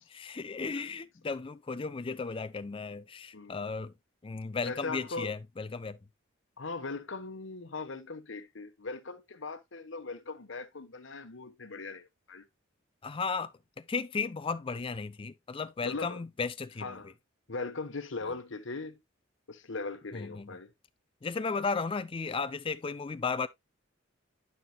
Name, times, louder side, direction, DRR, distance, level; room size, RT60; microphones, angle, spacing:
voice 1, 0.1-3.9 4.2-6.0 13.0-13.5 13.8-17.0 20.1-20.5 21.2-23.5, left 4 dB, 25° left, 0.4 m, -35 dB
voice 2, 3.3-3.7 4.6-5.3 6.6-12.4 15.8-16.2 16.8-17.1 17.5-19.0 19.5-20.7, left 3 dB, 65° left, 1.2 m, -39 dB
11.0 x 5.7 x 2.2 m
head